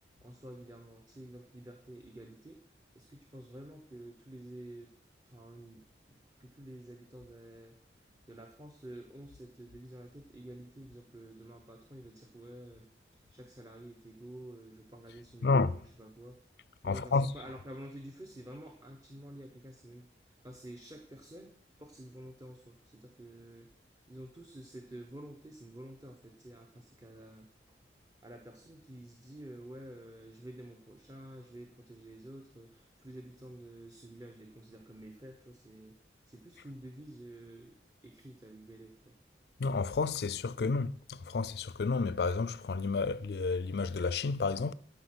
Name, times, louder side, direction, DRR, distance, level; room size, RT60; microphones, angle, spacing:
voice 1, 0.0-2.6 2.9-4.9 5.2-16.4 16.8-23.7 24.1-27.8 28.2-36.0 36.3-37.8 38.0-39.2, right 1 dB, 20° right, 1.0 m, -50 dB
voice 2, 15.4-15.8 16.8-17.5 39.6-44.7, left 4 dB, 60° left, 0.4 m, -31 dB
12.0 x 5.8 x 6.2 m
head